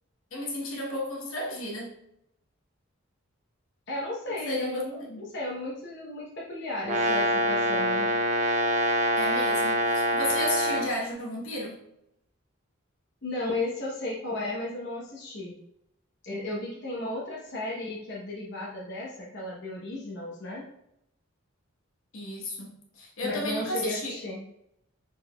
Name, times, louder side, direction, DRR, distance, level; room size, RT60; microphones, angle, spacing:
voice 1, 0.3-1.9 4.3-5.2 9.1-11.8 22.1-24.2, left 1 dB, 75° left, -1 dB, 1.1 m, -33 dB
voice 2, 3.9-8.1 13.2-15.6 16.2-20.7 23.2-24.4, left 2 dB, 55° left, -4 dB, 0.8 m, -34 dB
Brass instrument, 6.8-10.9, right 1 dB, 35° right, 0.5 m, -25 dB
4.7 x 4.3 x 2.2 m, 0.80 s
head